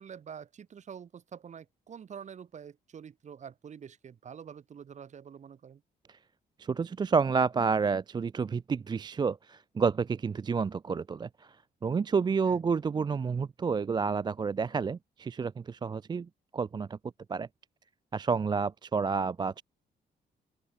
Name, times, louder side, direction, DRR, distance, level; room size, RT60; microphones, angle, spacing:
voice 1, 0.0-5.8 12.5-12.6, right 7 dB, 45° right, 1.0 m, -46 dB
voice 2, 6.6-11.6 11.8-17.0 17.3-17.5 18.1-19.6, right 5 dB, 25° right, 0.4 m, -30 dB
open air
cardioid pair, 120°, 17 cm